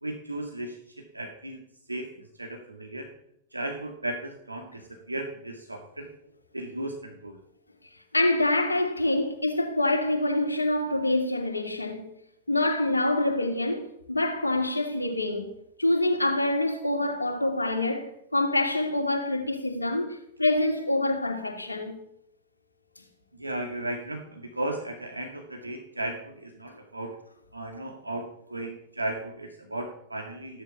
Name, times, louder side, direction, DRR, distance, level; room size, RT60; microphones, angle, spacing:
voice 1, 0.0-1.6 1.9-3.1 3.5-6.1 6.5-7.4 23.4-27.2 27.5-30.6, right 1 dB, 85° right, 2.1 m, -35 dB
voice 2, 8.1-12.1 12.5-15.5 15.8-22.0, left 2 dB, 85° left, 2.8 m, -26 dB
16.0 x 12.0 x 7.1 m
figure-of-eight pair, 90°, 0 cm